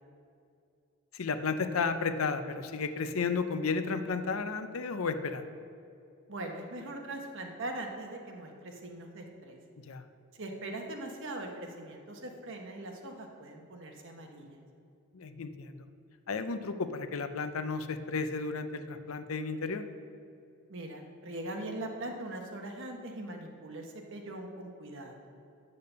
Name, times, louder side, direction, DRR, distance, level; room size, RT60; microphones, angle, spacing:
voice 1, 1.1-5.4 9.8-10.0 15.1-15.9 16.3-19.9, left 4 dB, 70° left, 10 dB, 0.6 m, -33 dB
voice 2, 6.3-9.6 10.3-14.6 20.7-25.2, right 1 dB, 60° right, 3 dB, 1.2 m, -41 dB
8.6 x 6.7 x 6.7 m, 2.6 s
head